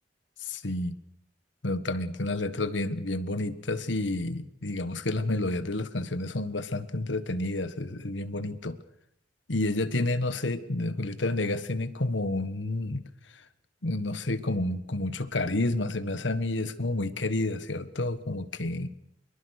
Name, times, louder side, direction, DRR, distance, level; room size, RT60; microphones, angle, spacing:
voice 1, 0.4-1.0 1.6-8.8 9.5-13.0 13.8-18.9, left 2 dB, 80° left, 13 dB, 1.5 m, -30 dB
24.0 x 23.0 x 6.6 m, 0.74 s
head